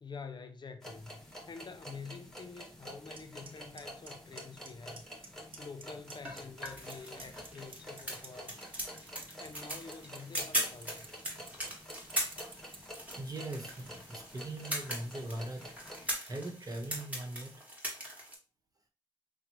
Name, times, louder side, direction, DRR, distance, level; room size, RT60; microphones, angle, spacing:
voice 1, 0.0-5.3 5.6-8.6 9.3-11.1, left 4 dB, 55° left, 0.5 m, -48 dB
sound 1, 0.8-16.1, equal, 5° left, 1.4 m, -49 dB
Clock, 3.2-3.3 3.5-4.7 5.0-5.3 5.5-6.4 6.7-13.0, right 5 dB, 70° right, 0.8 m, -49 dB
sound 2, 6.1-18.3, equal, 15° right, 1.7 m, -40 dB
voice 2, 13.2-15.7 16.3-17.6, right 1 dB, 40° right, 1.1 m, -40 dB
5.7 x 2.2 x 3.0 m
cardioid pair, 45°, 9 cm